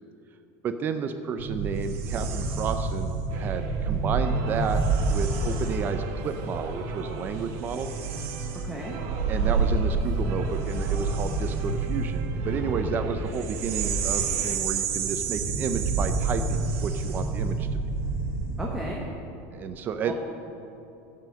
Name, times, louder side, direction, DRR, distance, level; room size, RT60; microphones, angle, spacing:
voice 1, 0.6-4.8 5.1-7.9 9.3-17.8 19.5-20.1, right 6 dB, 25° right, 8 dB, 0.5 m, -31 dB
sound 1, 1.4-18.9, right 4 dB, 80° right, 1.6 m, -28 dB
sound 2, 3.3-14.6, right 3 dB, 50° right, 1.3 m, -42 dB
voice 2, 8.6-9.0 18.6-19.0 20.0-20.1, right 2 dB, 5° right, -3 dB, 1.1 m, -33 dB
15.5 x 5.7 x 7.4 m, 2.8 s
supercardioid pair, 160°, 7 cm